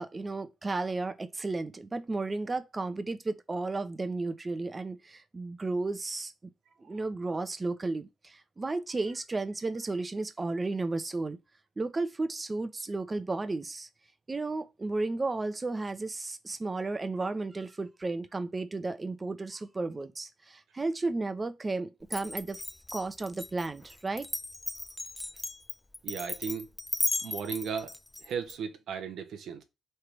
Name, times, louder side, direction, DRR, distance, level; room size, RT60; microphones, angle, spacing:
voice 1, 0.0-6.3 6.8-11.4 11.8-13.9 14.3-22.6 22.9-24.3, right 3 dB, 30° right, 0.6 m, -33 dB
Glass, 22.1-28.5, left 2 dB, 15° left, 0.4 m, -36 dB
voice 2, 26.0-26.7 27.2-27.9 28.2-29.6, right 6 dB, 70° right, 0.6 m, -36 dB
3.3 x 2.8 x 4.6 m
hypercardioid pair, 40°, 0 cm